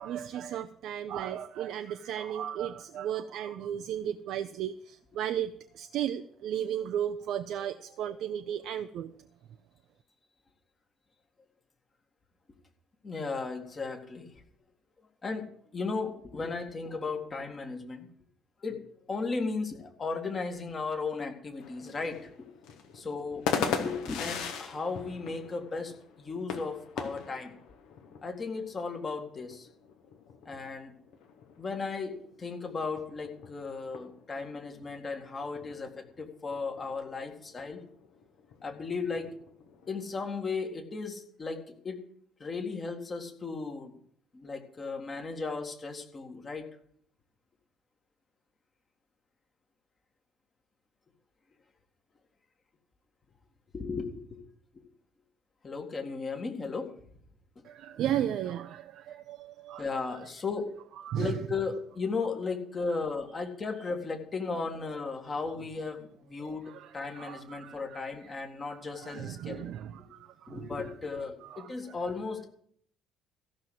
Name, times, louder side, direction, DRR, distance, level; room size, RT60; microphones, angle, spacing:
voice 1, 0.0-9.1 57.6-59.8 61.1-61.4 66.7-68.1 68.7-70.7 71.4-71.7, right 10 dB, 55° right, 9 dB, 0.5 m, -35 dB
voice 2, 13.0-14.3 15.2-18.1 18.6-18.8 19.1-22.5 22.9-23.4 23.7-27.6 28.2-29.7 30.5-30.9 31.6-37.8 38.6-39.3 39.9-42.0 42.4-43.9 44.3-46.7 53.7-54.4 55.6-56.9 59.8-60.7 61.1-69.6 70.5-72.5, left 4 dB, 30° left, 3 dB, 1.9 m, -35 dB
sound 1, 21.6-40.5, left 6 dB, 60° left, 1.3 m, -40 dB
14.5 x 6.3 x 7.7 m, 0.63 s
figure-of-eight pair, 50°, 0 cm